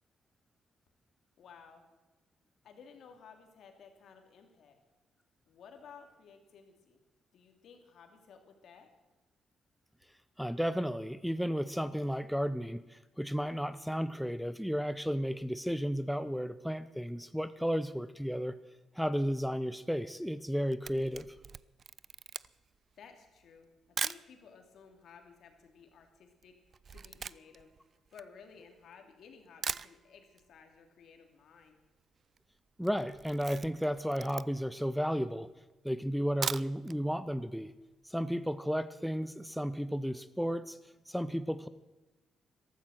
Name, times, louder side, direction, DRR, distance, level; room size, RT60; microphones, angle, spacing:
voice 1, 1.4-1.9 2.6-4.8 5.5-7.0 7.3-8.9 23.0-23.7 24.0-27.7 28.1-31.8, left 6 dB, 70° left, 5 dB, 2.6 m, -56 dB
voice 2, 10.4-18.5 18.9-21.3 32.8-35.5 35.8-37.7 38.0-40.8 41.1-41.7, equal, ahead, 14 dB, 0.6 m, -33 dB
Camera, 20.4-24.3 25.0-25.1 25.3-28.9 29.3-29.4 29.6-30.5 30.7-30.8 31.1-31.2 31.4-31.9 32.2-32.4 32.8-34.8 35.3-35.4 36.2-37.0 37.3-37.4 37.8-37.9, right 6 dB, 45° right, 0.4 m, -40 dB
14.5 x 13.0 x 6.4 m, 1.1 s
cardioid pair, 90°, 0 cm